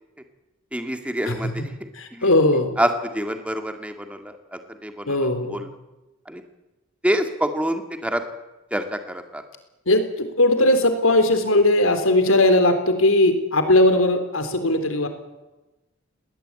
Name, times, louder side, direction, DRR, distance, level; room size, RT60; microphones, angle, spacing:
voice 1, 0.7-2.3 2.8-5.7 6.3-6.4 7.0-8.2 8.7-9.4, equal, 5° right, 7 dB, 2.1 m, -27 dB
voice 2, 2.0-2.7 5.1-5.7 9.9-15.1, left 1 dB, 90° left, 8 dB, 3.6 m, -19 dB
19.5 x 19.5 x 8.8 m, 1.0 s
head